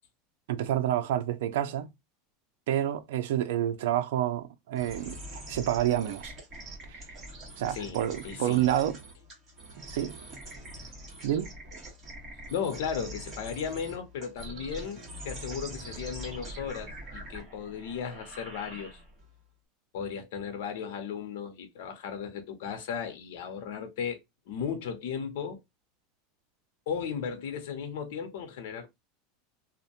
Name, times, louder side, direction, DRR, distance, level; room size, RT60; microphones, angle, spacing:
voice 1, 0.5-1.9 2.7-6.3 6.9-7.0 7.6-9.0 9.8-10.2 11.2-11.5, right 11 dB, 80° right, 0.5 m, -29 dB
sound 1, 4.8-19.3, right 1 dB, 25° right, 1.3 m, -44 dB
voice 2, 8.2-8.7 12.5-19.0 19.9-24.2 24.5-25.6 26.9-28.9, left 7 dB, 70° left, 0.6 m, -35 dB
2.5 x 2.1 x 2.7 m
supercardioid pair, 160°, 0 cm